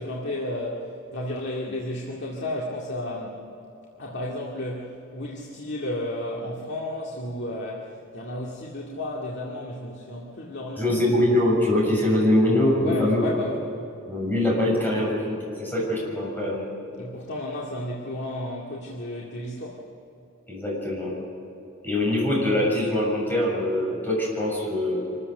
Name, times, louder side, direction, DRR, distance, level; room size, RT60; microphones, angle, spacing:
voice 1, 0.0-3.5 4.0-11.0 12.8-13.7 16.9-19.8, left 1 dB, 55° left, -3 dB, 2.2 m, -33 dB
voice 2, 10.8-13.2 14.1-16.6 20.5-21.1 21.8-25.2, left 1 dB, 10° left, -3 dB, 7.0 m, -23 dB
25.5 x 14.5 x 7.9 m, 2.9 s
head